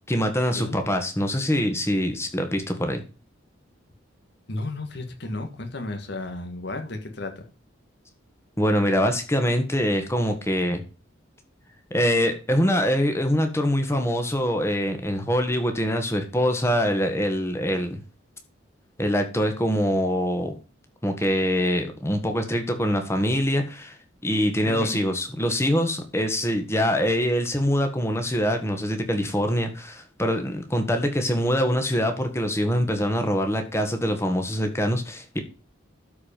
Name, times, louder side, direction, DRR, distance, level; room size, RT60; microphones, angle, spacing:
voice 1, 0.1-3.0 8.6-10.8 11.9-18.0 19.0-20.5 21.0-24.0 24.2-35.4, equal, 15° left, 6 dB, 1.6 m, -24 dB
voice 2, 4.5-7.4 24.6-24.9, left 2 dB, 60° left, 5 dB, 1.6 m, -33 dB
12.5 x 4.9 x 5.2 m, 0.34 s
head